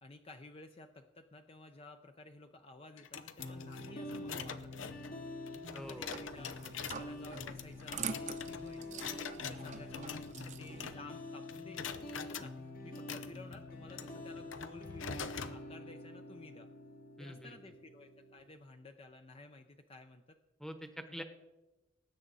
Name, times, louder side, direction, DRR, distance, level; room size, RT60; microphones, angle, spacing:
voice 1, 0.0-5.1 5.7-6.5 7.0-9.1 9.4-10.2 10.6-11.9 12.1-12.5 12.8-16.7 17.2-20.2 21.1-21.2, left 2 dB, 30° left, 6 dB, 0.6 m, -54 dB
sound 1, 3.0-11.2 11.5-12.5 12.9-15.6, left 6 dB, 85° left, 0.7 m, -45 dB
sound 2, 3.4-18.4, left 2 dB, 50° left, 1.5 m, -47 dB
voice 2, 5.7-6.3 9.6-9.8 17.2-17.6 20.6-21.2, equal, 5° left, 7 dB, 1.0 m, -46 dB
sound 3, 5.8-10.9, right 6 dB, 40° right, 0.8 m, -46 dB
19.5 x 8.9 x 4.1 m, 1.1 s
head